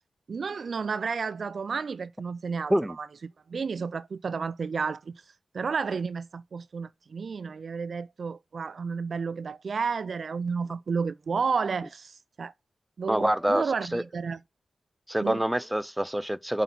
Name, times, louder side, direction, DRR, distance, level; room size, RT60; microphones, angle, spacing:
voice 1, 0.3-5.2 5.5-12.5 13.0-14.4 15.2-15.4, right 5 dB, 70° right, 0.3 m, -31 dB
voice 2, 13.1-13.6 13.9-14.0 15.1-16.6, right 1 dB, 10° right, 0.5 m, -26 dB
7.0 x 4.2 x 5.3 m
cardioid pair, 40°, 0 cm